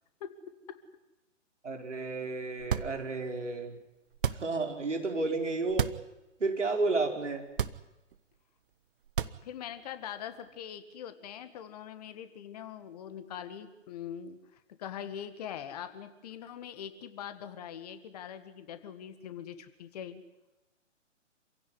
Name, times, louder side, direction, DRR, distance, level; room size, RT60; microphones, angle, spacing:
voice 1, 1.6-3.8 4.4-5.9 6.4-7.4, right 3 dB, 70° right, 3 dB, 5.0 m, -31 dB
sound 1, 2.6-3.3 4.1-4.7 5.7-6.1 6.5-6.6 7.5-8.2 9.0-9.7, right 8 dB, 45° right, 1.0 m, -32 dB
voice 2, 9.4-20.2, left 9 dB, 30° left, 10 dB, 1.8 m, -42 dB
27.5 x 16.0 x 9.9 m, 1.0 s
figure-of-eight pair, 130°, 37 cm